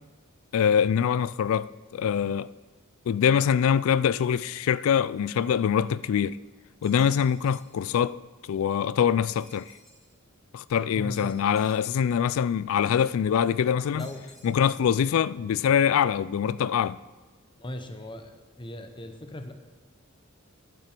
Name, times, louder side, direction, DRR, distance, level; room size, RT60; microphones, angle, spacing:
voice 1, 0.5-2.5 3.1-6.4 6.8-8.2 8.5-9.7 10.5-14.1 14.4-17.0, left 8 dB, 70° left, 0.3 m, -24 dB
sound 1, 6.8-7.8 9.2-10.1 11.1-12.3 14.0-15.0, equal, ahead, 2.6 m, -56 dB
voice 2, 10.9-11.6 13.9-14.3 17.6-19.5, left 1 dB, 25° left, 0.9 m, -38 dB
12.0 x 9.1 x 4.5 m
head